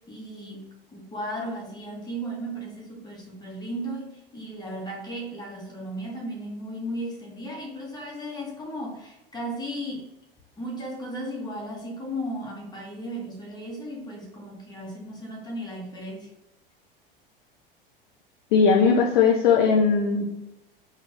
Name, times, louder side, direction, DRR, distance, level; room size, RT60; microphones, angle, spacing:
voice 1, 0.1-10.1 10.6-16.3, equal, 15° left, -2 dB, 1.4 m, -35 dB
voice 2, 18.5-20.2, left 5 dB, 60° left, 0 dB, 0.6 m, -19 dB
4.0 x 2.6 x 4.7 m, 0.89 s
figure-of-eight pair, 75°, 29 cm